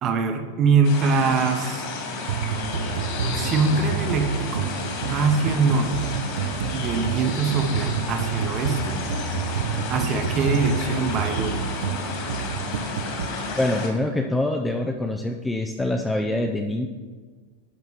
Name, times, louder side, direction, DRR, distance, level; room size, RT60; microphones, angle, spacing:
voice 1, 0.0-1.9 3.3-4.6 5.0-6.2 6.7-9.0 9.9-11.7, right 4 dB, 25° right, 6 dB, 0.8 m, -23 dB
sound 1, 0.8-13.9, left 3 dB, 45° left, 2.1 m, -32 dB
sound 2, 2.3-13.3, right 6 dB, 75° right, 0.8 m, -29 dB
voice 2, 13.6-16.9, left 1 dB, 5° left, 4 dB, 0.4 m, -25 dB
10.5 x 5.7 x 4.8 m, 1.5 s
supercardioid pair, 175°, 0 cm